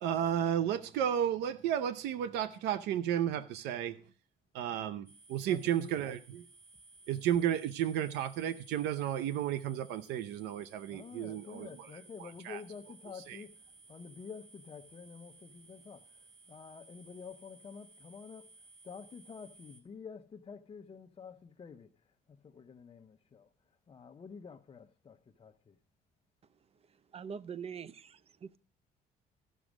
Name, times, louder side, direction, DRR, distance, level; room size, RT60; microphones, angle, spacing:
voice 1, 0.0-4.0 4.5-6.4 7.1-11.7 12.2-12.6 13.3-13.4, right 10 dB, 85° right, 0.7 m, -33 dB
sound 1, 5.0-19.8, right 2 dB, 60° right, 3.3 m, -58 dB
voice 2, 5.4-6.0 10.9-13.6 13.9-18.5 18.8-23.5 23.9-25.8, left 6 dB, 30° left, 0.8 m, -49 dB
voice 3, 27.1-28.6, right 7 dB, 35° right, 0.6 m, -43 dB
13.5 x 6.3 x 6.1 m
cardioid pair, 110°, 17 cm